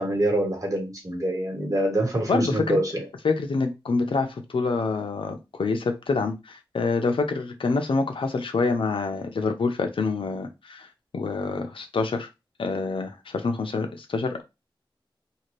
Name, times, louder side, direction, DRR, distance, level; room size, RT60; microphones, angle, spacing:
voice 1, 0.0-3.1, right 1 dB, 40° right, 1.3 m, -25 dB
voice 2, 2.3-2.8 3.2-10.9 11.1-12.3 12.6-14.4, left 4 dB, 85° left, 0.6 m, -26 dB
2.8 x 2.5 x 3.1 m
wide cardioid pair, 85°, 9 cm